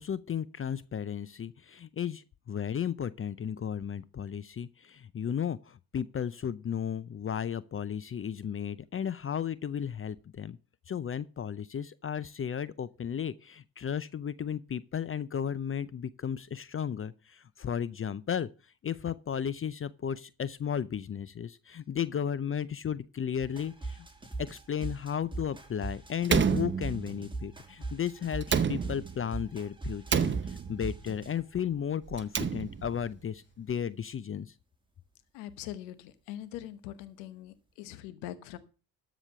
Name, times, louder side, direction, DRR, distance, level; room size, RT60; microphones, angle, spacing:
voice 1, 0.0-10.6 10.9-18.5 18.8-24.0 24.4-30.3 30.7-34.5, left 8 dB, 35° left, 0.6 m, -34 dB
sound 1, 23.4-31.3, right 3 dB, 10° right, 2.4 m, -40 dB
Slam, 26.2-27.4 28.4-29.3 30.1-31.0 32.1-33.1, right 7 dB, 30° right, 0.8 m, -29 dB
voice 2, 35.3-38.6, left 13 dB, 90° left, 1.0 m, -42 dB
13.0 x 5.1 x 6.7 m
supercardioid pair, 65°, 39 cm